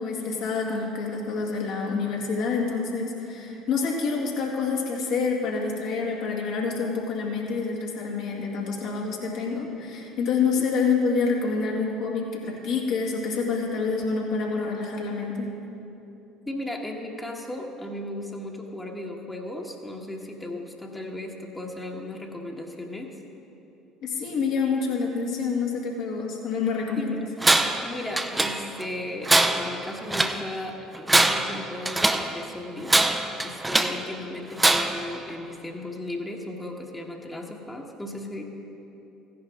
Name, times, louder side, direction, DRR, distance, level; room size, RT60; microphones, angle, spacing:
voice 1, 0.0-15.5 24.0-27.2, left 4 dB, 60° left, -1 dB, 2.2 m, -27 dB
voice 2, 16.5-23.1 27.0-27.5 27.8-33.0 33.4-38.4, left 1 dB, 15° left, 0 dB, 1.4 m, -36 dB
Tools, 27.4-27.9 28.2-28.9 29.3-30.4 30.9-32.3 32.9-34.0 34.6-35.1, right 2 dB, 15° right, 0.7 m, -22 dB
15.0 x 10.5 x 3.7 m, 3.0 s
hypercardioid pair, 65°, 0 cm